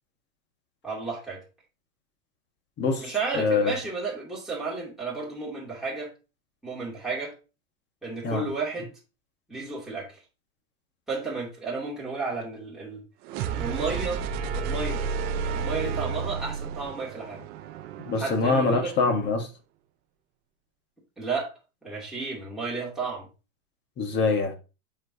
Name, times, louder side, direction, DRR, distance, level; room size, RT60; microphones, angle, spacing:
voice 1, 0.8-1.4 3.0-6.1 6.6-7.3 8.0-8.9 9.5-10.2 11.1-13.0 13.4-14.2 14.5-15.1 15.5-17.4 18.2-18.9 21.2-21.5 21.8-23.3, right 4 dB, ahead, 2.6 m, -32 dB
voice 2, 2.8-3.7 8.2-8.4 18.0-19.5 24.0-24.5, left 4 dB, 25° left, 1.4 m, -24 dB
sound 1, 13.2-19.1, right 5 dB, 25° right, 0.4 m, -32 dB
7.4 x 4.8 x 2.7 m
supercardioid pair, 135°, 42 cm